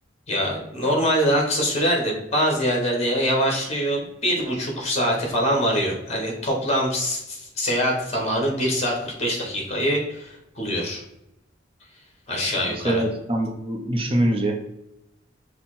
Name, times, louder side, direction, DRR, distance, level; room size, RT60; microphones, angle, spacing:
voice 1, 0.3-11.0 12.3-13.0, equal, 35° left, 0 dB, 1.4 m, -24 dB
voice 2, 12.5-14.6, right 1 dB, 30° right, 2 dB, 0.7 m, -24 dB
5.6 x 2.2 x 4.2 m, 0.85 s
head